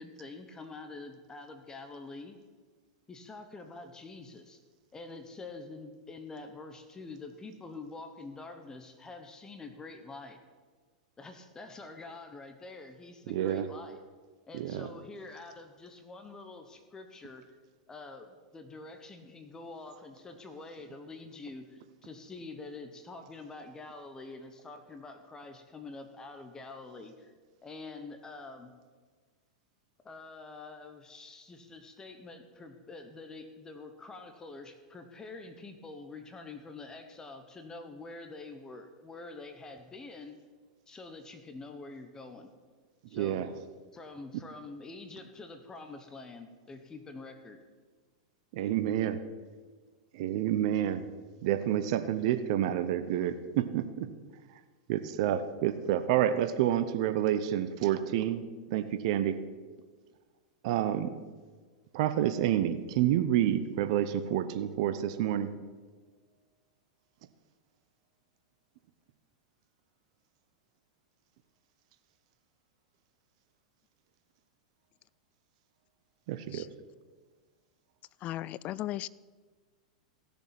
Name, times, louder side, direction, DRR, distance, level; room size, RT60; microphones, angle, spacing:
voice 1, 0.0-2.4 3.1-4.6 4.9-10.4 11.2-14.0 14.5-17.5 17.9-27.3 27.6-28.7 30.0-40.4 40.9-42.5 43.1-43.5 43.9-47.6, left 3 dB, 15° left, 7 dB, 1.1 m, -46 dB
voice 2, 13.3-13.7 14.5-14.9 43.1-43.5 48.5-49.2 50.1-51.1 51.4-54.1 54.5-54.6 54.9-59.4 60.6-61.2 61.9-65.5 76.3-76.7, right 11 dB, 60° right, 10 dB, 0.8 m, -29 dB
voice 3, 78.2-79.1, left 14 dB, 35° left, 21 dB, 0.3 m, -36 dB
16.0 x 7.0 x 5.9 m, 1.4 s
hypercardioid pair, 110°, 4 cm